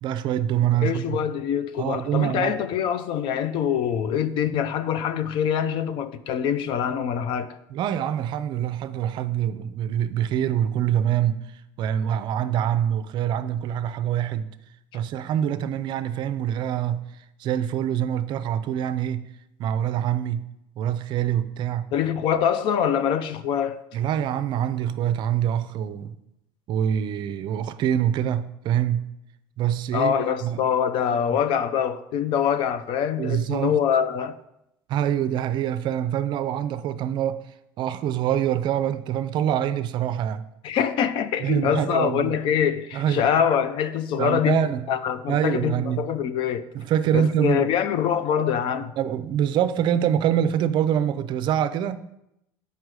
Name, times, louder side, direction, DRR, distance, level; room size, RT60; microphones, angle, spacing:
voice 1, 0.0-1.2 1.8-2.5 7.7-11.4 11.8-14.5 14.9-17.0 17.4-19.3 19.6-20.5 20.8-21.9 23.9-26.2 26.7-29.1 29.6-30.6 33.2-33.8 34.9-37.4 37.8-40.4 41.4-42.4 42.9-43.3 44.2-44.9 45.3-46.1 46.7-47.7 49.0-52.0, right 10 dB, 50° right, 0.5 m, -25 dB
voice 2, 0.8-7.6 21.9-23.8 29.9-34.4 40.6-44.6 44.9-46.6 47.1-49.0, left 8 dB, 60° left, 0.5 m, -24 dB
7.6 x 5.4 x 4.8 m
cardioid pair, 130°, 10 cm